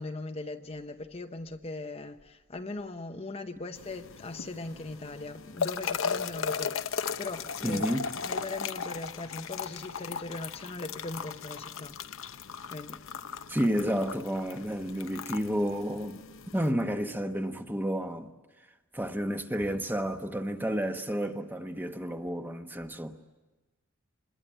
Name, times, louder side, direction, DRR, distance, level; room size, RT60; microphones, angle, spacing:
voice 1, 0.0-7.9 8.2-12.0 12.7-13.0, left 2 dB, 30° left, 0.8 m, -39 dB
sound 1, 3.8-16.7, left 6 dB, 65° left, 0.8 m, -37 dB
voice 2, 7.6-8.1 13.5-18.3 18.9-23.2, equal, 10° right, 1.2 m, -31 dB
26.0 x 21.5 x 9.1 m
head